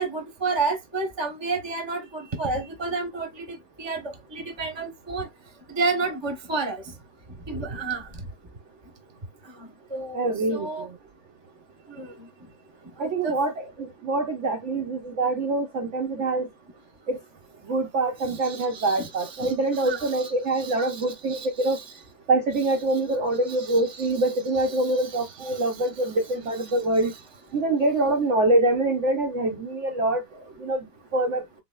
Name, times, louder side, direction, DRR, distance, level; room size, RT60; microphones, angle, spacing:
voice 1, 0.0-3.4 3.8-5.3 5.7-6.8 7.5-8.1 9.6-10.9 11.9-12.3 13.0-13.4 18.3-21.8 23.5-24.1 24.7-25.6 31.2-31.3, right 3 dB, 20° right, 0.7 m, -31 dB
voice 2, 10.1-11.0 13.0-16.5 17.1-17.2 17.6-21.8 22.3-27.1 27.5-30.9 31.1-31.4, right 2 dB, 65° right, 0.7 m, -25 dB
4.1 x 3.4 x 2.3 m
omnidirectional pair, 1.9 m